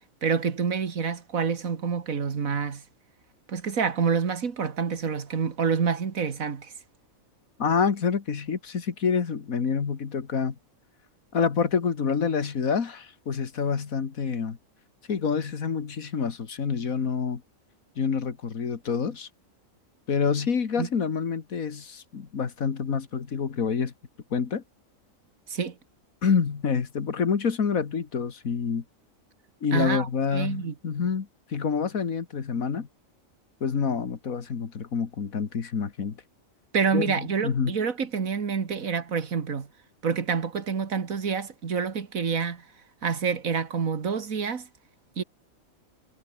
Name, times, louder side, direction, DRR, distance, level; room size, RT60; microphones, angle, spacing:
voice 1, 0.2-2.8 3.5-6.7 20.8-20.9 25.5-25.8 29.7-30.7 36.7-39.7 40.0-42.6 43.0-44.7 45.2-45.3, right 6 dB, 85° right, 2.1 m, -27 dB
voice 2, 7.6-10.6 11.3-14.6 15.1-17.4 18.0-19.3 20.1-23.9 24.3-24.6 26.2-28.8 29.6-32.9 33.6-36.2 36.9-37.7, left 6 dB, 85° left, 2.2 m, -27 dB
omnidirectional pair, 1.4 m